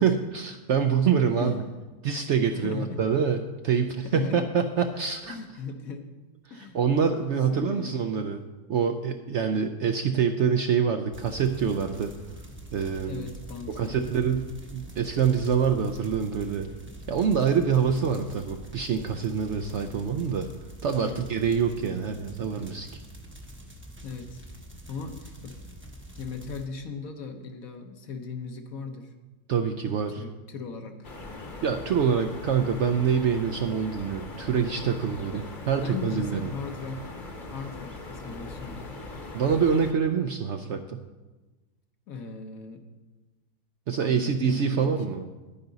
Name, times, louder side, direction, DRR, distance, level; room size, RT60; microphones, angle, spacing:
voice 1, 0.0-1.5 2.0-3.4 3.6-5.4 6.5-8.4 8.7-12.1 12.7-13.2 13.7-14.5 14.7-16.7 17.1-20.5 20.8-22.9 29.5-30.2 31.6-36.5 39.3-41.0 43.9-45.2, right 7 dB, 65° right, 7 dB, 0.7 m, -25 dB
voice 2, 1.4-1.7 2.5-3.0 4.0-4.4 5.3-6.1 6.5-6.8 7.5-8.2 13.1-14.0 21.0-21.3 24.0-24.5 24.9-25.5 26.1-29.1 30.1-31.1 35.3-35.4 35.8-37.0 37.5-38.9 42.1-42.8 44.0-44.9, left 4 dB, 65° left, 5 dB, 1.4 m, -38 dB
sound 1, 11.1-26.7, equal, 10° right, 0.6 m, -45 dB
sound 2, 31.0-39.9, left 2 dB, 35° left, 1.1 m, -40 dB
11.0 x 9.5 x 4.0 m, 1.2 s
omnidirectional pair, 1.6 m